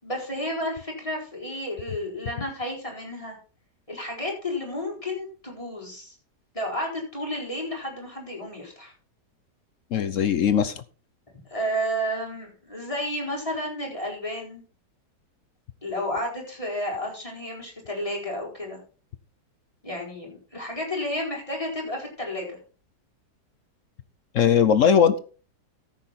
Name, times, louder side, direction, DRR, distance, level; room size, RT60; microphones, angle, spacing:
voice 1, 0.0-3.4 3.9-6.2 6.5-8.9 11.5-14.6 15.8-18.8 19.8-22.6, equal, 20° left, -1 dB, 4.4 m, -31 dB
voice 2, 9.9-10.7 24.3-25.2, left 8 dB, 60° left, 13 dB, 0.9 m, -19 dB
14.0 x 7.7 x 4.3 m, 0.39 s
omnidirectional pair, 1.9 m